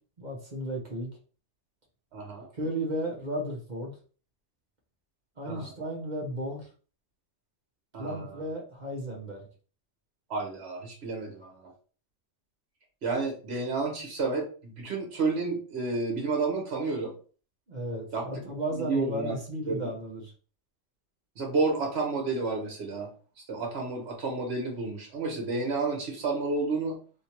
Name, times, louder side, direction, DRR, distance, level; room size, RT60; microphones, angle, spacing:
voice 1, 0.2-1.1 2.5-3.9 5.4-6.7 8.0-9.5 17.7-20.3, right 1 dB, 40° right, -1 dB, 1.0 m, -34 dB
voice 2, 2.1-2.5 5.4-5.7 7.9-8.4 10.3-11.7 13.0-14.5 14.7-17.1 18.1-18.3 18.7-19.3 19.7-19.9 21.4-23.1 23.5-27.0, right 3 dB, 65° right, 1 dB, 1.4 m, -30 dB
3.4 x 2.9 x 2.9 m, 0.39 s
omnidirectional pair, 1.2 m